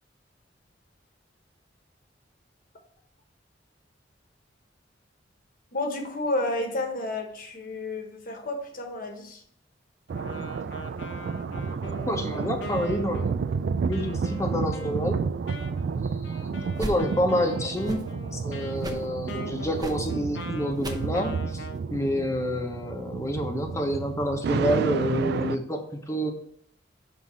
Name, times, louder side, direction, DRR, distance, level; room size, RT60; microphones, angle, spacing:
voice 1, 5.7-9.4, left 2 dB, 50° left, 1.2 m, -31 dB
Wind instrument woodwind instrument, 10.1-21.8, left 3 dB, 75° left, 0.8 m, -42 dB
sound 1, 10.1-25.6, right 5 dB, 60° right, 0.3 m, -31 dB
voice 2, 12.1-13.3 13.9-15.2 16.5-21.6 21.9-26.3, equal, 15° left, 0.9 m, -28 dB
sound 2, 16.7-17.0 17.7-18.1 18.8-19.1 19.7-20.1 20.7-21.1 21.7-21.8, right 1 dB, 20° right, 0.7 m, -37 dB
5.7 x 3.8 x 6.0 m
head